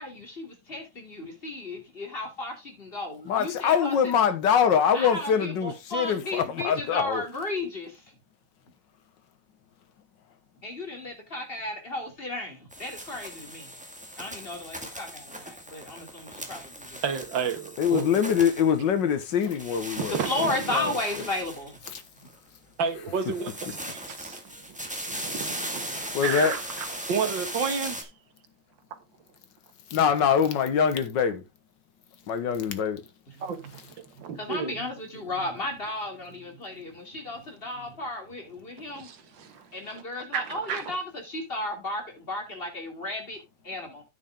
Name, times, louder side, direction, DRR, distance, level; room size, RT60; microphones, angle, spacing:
voice 1, 0.0-3.9 4.9-8.0 10.6-13.7 14.2-17.0 20.1-21.8 33.3-33.5 34.1-39.1 39.7-44.0, left 2 dB, 30° left, 3.0 m, -34 dB
voice 2, 3.3-7.2 17.8-21.0 21.9-22.0 26.1-26.5 29.9-31.4 32.3-33.1, left 7 dB, 75° left, 1.9 m, -24 dB
sound 1, 12.7-19.2 19.5-22.3 23.2-28.0, right 1 dB, 5° right, 1.7 m, -38 dB
voice 3, 17.0-18.2 20.0-20.5 22.8-24.4 24.7-28.1 33.4-33.6 34.0-34.7 38.9-40.0 40.3-41.0, right 6 dB, 85° right, 2.1 m, -32 dB
9.3 x 7.6 x 3.6 m
omnidirectional pair, 2.0 m